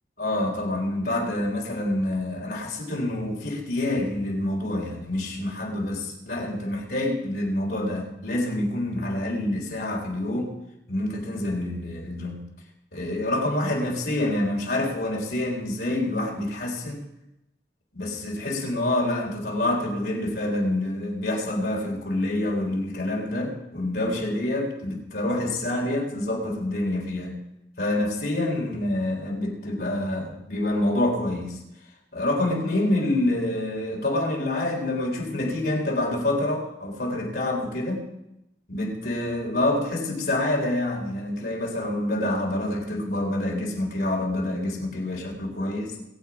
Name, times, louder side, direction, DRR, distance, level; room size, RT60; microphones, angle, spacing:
voice 1, 0.2-10.5 10.9-12.5 12.9-17.0 17.9-27.4 27.8-31.6 32.1-38.0 38.7-45.9, left 1 dB, 60° left, -1 dB, 3.9 m, -27 dB
21.5 x 7.9 x 5.0 m, 0.89 s
head